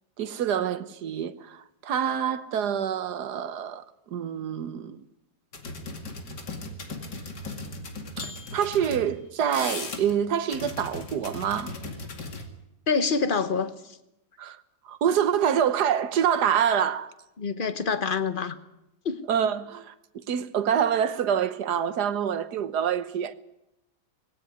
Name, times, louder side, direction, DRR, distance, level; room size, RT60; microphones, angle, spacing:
voice 1, 0.2-5.0 8.2-11.7 14.4-17.1 19.3-23.3, right 8 dB, 70° right, 1.6 m, -26 dB
sound 1, 5.5-9.1 9.4-10.2 10.5-12.4, left 3 dB, 75° left, 2.9 m, -37 dB
voice 2, 12.9-13.7 17.4-18.6 19.0-19.2, left 5 dB, 35° left, 1.2 m, -26 dB
19.0 x 17.5 x 9.7 m
omnidirectional pair, 1.8 m